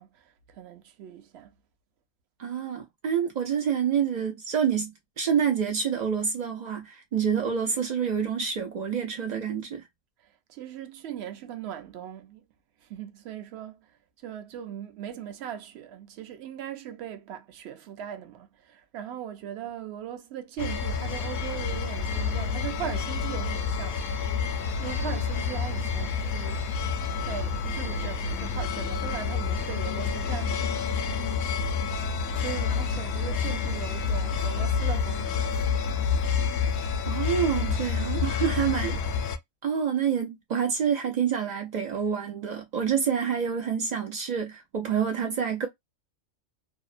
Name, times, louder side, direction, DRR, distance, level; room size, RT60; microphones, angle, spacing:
voice 1, 0.0-1.5 10.2-12.4 12.8-24.0 24.5-26.7 27.1-30.9 32.3-35.6 38.5-38.6, right 10 dB, 65° right, 0.7 m, -39 dB
voice 2, 2.4-9.8 37.1-39.0 39.6-45.7, right 7 dB, 85° right, 0.3 m, -27 dB
sound 1, 20.6-39.4, left 6 dB, 65° left, 0.7 m, -28 dB
2.7 x 2.0 x 2.4 m
omnidirectional pair, 1.4 m